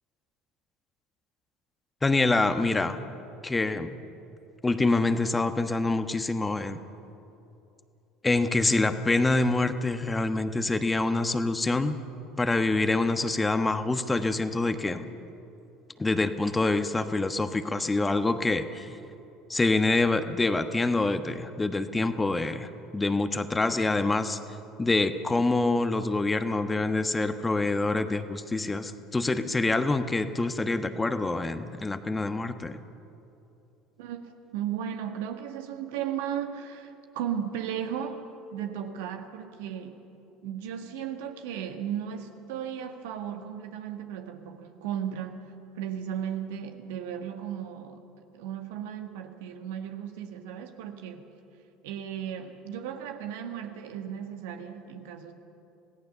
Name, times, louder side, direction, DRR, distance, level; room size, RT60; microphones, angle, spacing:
voice 1, 2.0-3.1 3.4-3.9 4.6-6.8 8.2-12.0 12.4-15.1 16.0-18.9 19.5-24.4 24.8-32.8, left 2 dB, 15° left, 9 dB, 1.3 m, -26 dB
voice 2, 34.0-38.2 38.5-40.0 40.4-48.0 48.3-51.3 51.8-55.3, right 9 dB, 70° right, 6 dB, 1.6 m, -35 dB
27.0 x 17.5 x 6.9 m, 2.8 s
hypercardioid pair, 65°, 0 cm